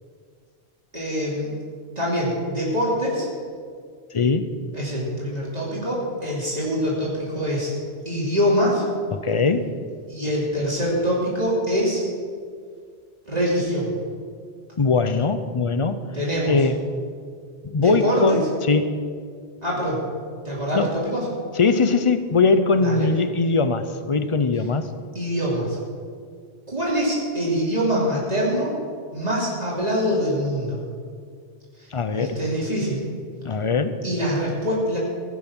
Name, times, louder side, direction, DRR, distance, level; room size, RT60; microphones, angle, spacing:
voice 1, 0.9-1.5 2.0-3.3 4.7-7.7 8.0-8.8 10.1-12.0 13.3-13.9 16.1-16.6 17.7-18.4 19.6-20.0 20.4-21.2 22.8-23.1 25.1-25.8 26.7-28.8 29.1-30.8 32.1-33.0 34.0-35.0, equal, 40° right, -6 dB, 3.1 m, -24 dB
voice 2, 4.1-4.5 9.1-9.7 14.8-16.0 16.5-16.8 17.6-19.0 20.7-20.9 21.6-24.9 31.9-32.4 33.4-34.0, left 4 dB, 35° left, 11 dB, 0.6 m, -21 dB
16.0 x 8.9 x 6.1 m, 2.1 s
omnidirectional pair, 1.1 m